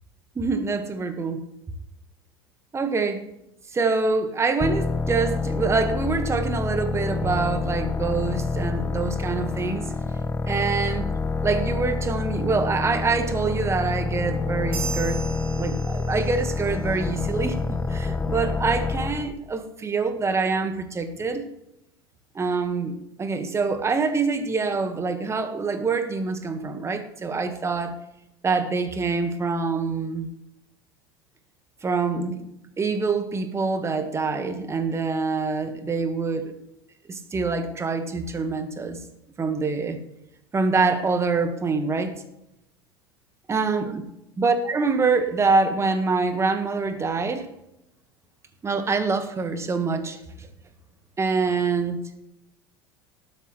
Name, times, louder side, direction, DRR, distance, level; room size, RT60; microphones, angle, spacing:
voice 1, 0.3-1.4 2.7-3.2 3.7-9.8 10.5-11.1 11.4-15.2 15.6-21.5 22.3-27.9 28.4-30.3 31.8-32.5 32.8-36.5 37.1-39.0 39.4-40.0 40.5-42.1 43.5-44.0 44.4-47.5 48.6-50.2 51.2-52.0, right 4 dB, 25° right, 8 dB, 1.6 m, -25 dB
sound 1, 4.6-19.3, left 4 dB, 15° left, 0.9 m, -27 dB
sound 2, 14.7-16.6, right 6 dB, 70° right, 3.0 m, -36 dB
19.0 x 8.1 x 3.2 m, 0.83 s
hypercardioid pair, 75°, 12 cm